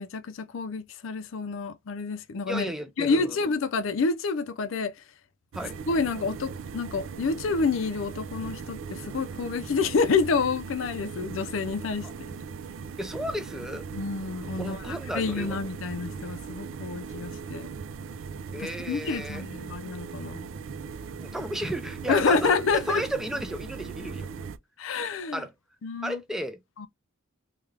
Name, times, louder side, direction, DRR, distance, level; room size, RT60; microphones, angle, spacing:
voice 1, 0.0-2.7 3.0-4.9 5.9-12.4 13.9-17.7 18.6-20.5 22.1-23.0 24.8-25.4 25.8-26.2 26.8-26.9, left 4 dB, 70° left, 0.4 m, -28 dB
voice 2, 2.5-3.4 5.5-5.8 12.0-12.1 13.0-13.8 14.6-15.6 18.5-19.4 21.2-24.5 25.3-25.5 26.0-26.6, equal, ahead, 0.5 m, -33 dB
sound 1, 5.5-24.6, right 5 dB, 70° right, 0.4 m, -39 dB
3.2 x 2.3 x 3.2 m
head